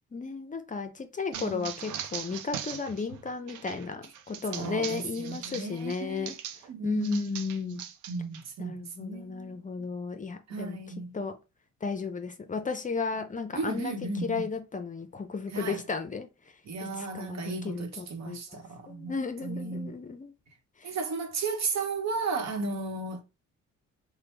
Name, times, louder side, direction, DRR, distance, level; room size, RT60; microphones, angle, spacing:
voice 1, 0.1-6.4 6.8-7.8 8.6-10.8 11.1-11.3 11.8-13.9 14.2-16.3 16.8-18.6 18.9-20.3 20.8-20.9, left 4 dB, 25° left, 0.5 m, -34 dB
voice 2, 1.3-1.7 4.5-6.4 6.7-10.0 10.5-11.2 13.5-14.5 15.5-15.8 16.6-19.1 19.4-20.0 20.8-23.2, right 3 dB, 65° right, 1.0 m, -35 dB
sound 1, 1.3-6.7 7.0-8.4, right 9 dB, 80° right, 0.5 m, -40 dB
3.0 x 2.1 x 3.4 m
cardioid pair, 90°, 30 cm